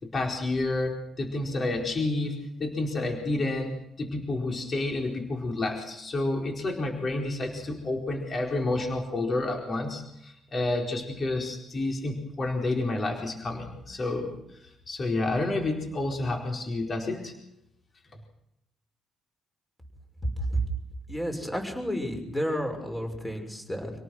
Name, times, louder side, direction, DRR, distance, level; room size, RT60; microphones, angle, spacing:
voice 1, 0.0-2.3 2.6-3.7 4.0-14.3 14.9-17.3, left 2 dB, 40° left, 1 dB, 4.6 m, -29 dB
voice 2, 21.1-23.9, equal, 10° left, 4 dB, 6.2 m, -31 dB
27.5 x 18.0 x 6.4 m, 0.82 s
cardioid pair, 90°, 0 cm